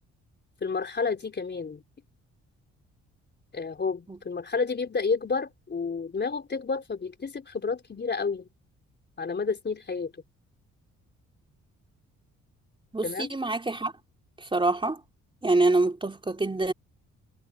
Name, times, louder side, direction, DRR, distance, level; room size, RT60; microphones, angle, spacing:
voice 1, 0.6-1.8 3.5-8.5 9.2-10.1 13.0-13.3, left 4 dB, 35° left, 4.0 m, -30 dB
voice 2, 12.9-13.9 14.4-15.0 15.4-16.7, right 2 dB, 15° right, 3.4 m, -25 dB
cardioid pair, 90°, 30 cm